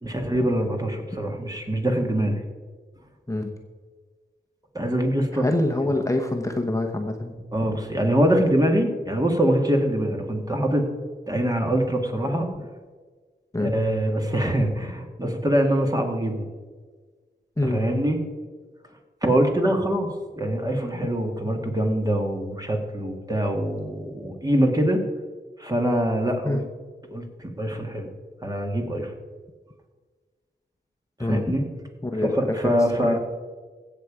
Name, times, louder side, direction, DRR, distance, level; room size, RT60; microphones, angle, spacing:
voice 1, 0.0-2.4 4.7-5.5 7.5-10.8 11.3-12.5 13.6-16.5 17.6-18.2 19.2-20.1 20.4-25.0 25.6-26.6 27.1-28.1 28.4-29.1 31.2-31.7 32.2-33.2, right 1 dB, 20° right, 3 dB, 1.9 m, -24 dB
voice 2, 5.3-7.4 13.5-13.7 17.6-17.9 26.4-26.6 31.2-31.4 32.0-33.1, left 2 dB, 15° left, 2 dB, 1.0 m, -26 dB
16.0 x 7.0 x 5.0 m, 1.5 s
wide cardioid pair, 70°, 19 cm